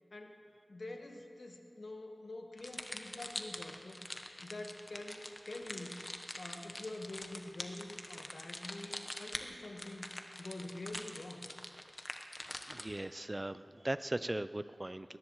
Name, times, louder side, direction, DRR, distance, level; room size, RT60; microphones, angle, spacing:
voice 1, 0.1-0.4 0.7-4.0 4.4-6.0 6.4-10.1 10.4-11.5, left 2 dB, 80° left, 3 dB, 1.4 m, -46 dB
sound 1, 2.6-13.0, left 1 dB, 35° left, 1.1 m, -45 dB
voice 2, 12.7-15.2, right 1 dB, 30° right, 13 dB, 0.5 m, -38 dB
21.0 x 18.5 x 3.1 m, 2.5 s
wide cardioid pair, 55°, 0 cm